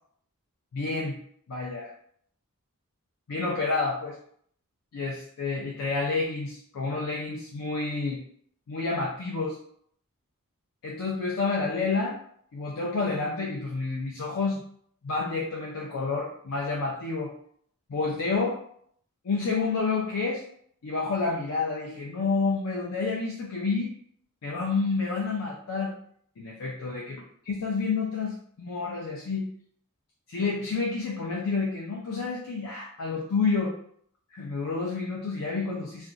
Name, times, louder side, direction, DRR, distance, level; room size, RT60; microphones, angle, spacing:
voice 1, 0.7-1.2 1.5-1.9 3.3-4.2 4.9-8.2 8.7-9.6 10.8-12.2 12.5-14.6 15.0-17.3 17.9-18.6 19.2-20.4 20.8-23.9 24.4-26.0 26.4-27.2 27.5-29.5 30.3-33.7 34.3-36.1, left 4 dB, 85° left, -2 dB, 0.5 m, -29 dB
2.4 x 2.2 x 3.8 m, 0.64 s
head